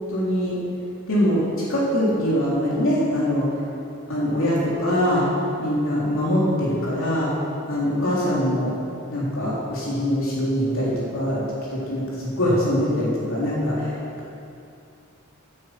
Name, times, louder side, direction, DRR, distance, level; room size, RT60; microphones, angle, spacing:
voice 1, 0.1-0.6 1.1-1.4 1.7-3.5 4.1-5.2 5.6-7.3 7.7-8.7 9.1-11.4 11.7-14.0, equal, 65° left, -7 dB, 3.6 m, -23 dB
17.0 x 9.4 x 5.9 m, 2.6 s
head